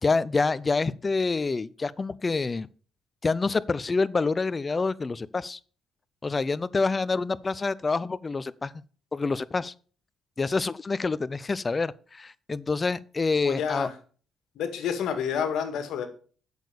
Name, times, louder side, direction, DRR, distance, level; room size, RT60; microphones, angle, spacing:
voice 1, 0.0-2.7 3.2-5.6 6.2-8.7 9.1-9.7 10.4-13.9, left 4 dB, 30° left, 0.5 m, -27 dB
voice 2, 13.4-14.0 14.5-16.1, left 7 dB, 80° left, 1.9 m, -29 dB
8.2 x 6.6 x 6.8 m
cardioid pair, 90°, 0 cm